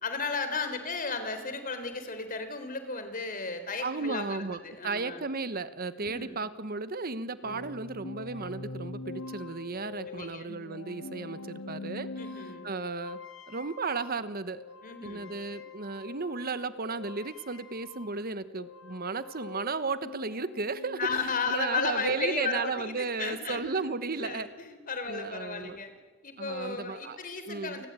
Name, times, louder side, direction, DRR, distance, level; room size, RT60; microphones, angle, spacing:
voice 1, 0.0-5.2 6.0-6.4 7.4-7.6 10.0-10.5 12.2-12.7 14.8-15.3 21.0-25.9 26.2-27.9, left 4 dB, 45° left, 9 dB, 3.7 m, -34 dB
voice 2, 3.8-12.1 12.6-13.2 13.5-14.6 15.0-24.5 25.1-25.8 26.4-27.2 27.5-27.8, right 4 dB, 50° right, 13 dB, 1.2 m, -34 dB
sound 1, 7.4-18.3 18.5-22.5, left 3 dB, 85° left, 1.7 m, -44 dB
29.5 x 20.0 x 9.0 m, 1.4 s
head